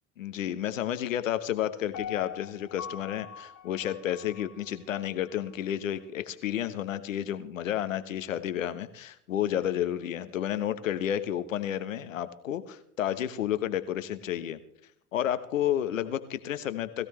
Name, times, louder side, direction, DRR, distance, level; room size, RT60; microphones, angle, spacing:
voice 1, 0.2-14.6 15.1-17.1, left 11 dB, 80° left, 12 dB, 1.1 m, -31 dB
Piano, 1.9-5.0 5.5-5.6, left 8 dB, 50° left, 2.1 m, -42 dB
20.5 x 15.0 x 3.2 m, 0.71 s
hypercardioid pair, 70°, 38 cm